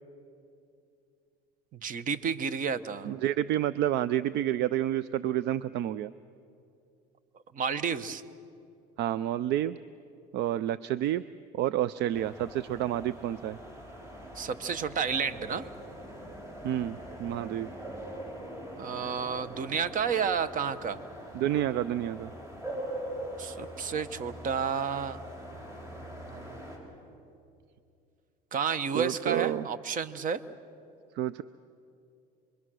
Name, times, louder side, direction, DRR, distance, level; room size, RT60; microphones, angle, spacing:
voice 1, 1.7-3.1 7.5-8.2 14.3-15.6 18.8-21.0 23.4-25.2 26.3-26.7 28.5-30.4, right 6 dB, 40° right, 14 dB, 1.1 m, -31 dB
voice 2, 3.0-6.1 9.0-9.8 10.3-11.3 11.5-13.6 16.6-17.7 21.3-22.3 28.9-29.7 31.2-31.4, right 12 dB, 60° right, 17 dB, 0.5 m, -29 dB
sound 1, 12.1-26.8, right 1 dB, 15° right, 5.5 m, -42 dB
27.0 x 22.5 x 6.3 m, 2.5 s
supercardioid pair, 105°, 20 cm